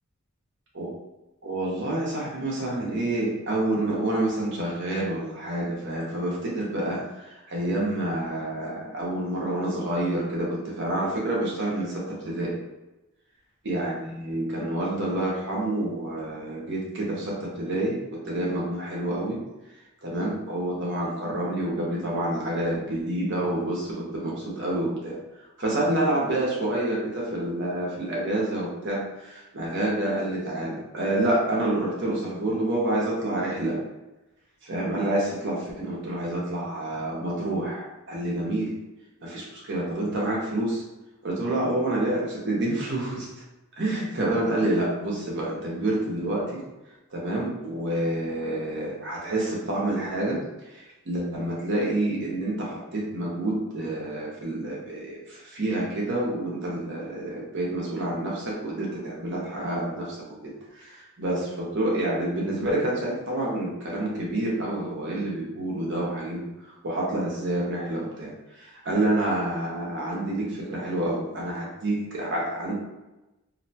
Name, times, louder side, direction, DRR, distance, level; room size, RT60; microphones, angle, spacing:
voice 1, 1.4-7.0 7.2-12.5 13.7-19.4 20.0-25.2 25.6-33.8 34.6-38.7 39.2-40.8 41.2-43.3 43.8-46.6 47.1-50.4 50.7-66.5 66.8-72.7, right 1 dB, 55° right, -4 dB, 0.7 m, -28 dB
2.6 x 2.1 x 2.7 m, 1.0 s
head